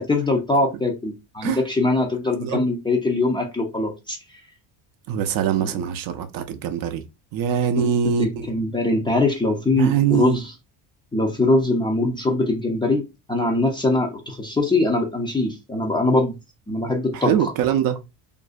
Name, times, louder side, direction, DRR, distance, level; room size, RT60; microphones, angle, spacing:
voice 1, 0.1-4.2 5.6-5.7 7.8-7.9 8.2-10.4 11.1-13.0 13.3-16.4 16.7-17.3, left 2 dB, 10° left, 0.4 m, -22 dB
voice 2, 5.1-7.0 7.3-8.5 9.8-10.4 17.1-18.0, right 9 dB, 55° right, 0.4 m, -23 dB
2.5 x 2.1 x 2.3 m
cardioid pair, 115°, 43 cm